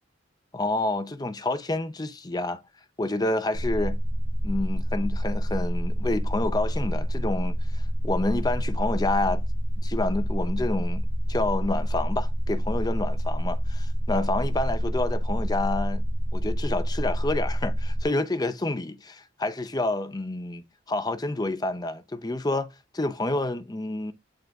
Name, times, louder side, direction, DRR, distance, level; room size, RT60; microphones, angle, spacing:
voice 1, 0.5-2.6 3.0-4.0 4.4-9.4 9.8-16.0 16.3-22.7 22.9-24.1, left 2 dB, 20° left, 0.5 m, -28 dB
sound 1, 3.5-18.0, equal, 45° right, 2.7 m, -27 dB
9.0 x 3.8 x 3.5 m
head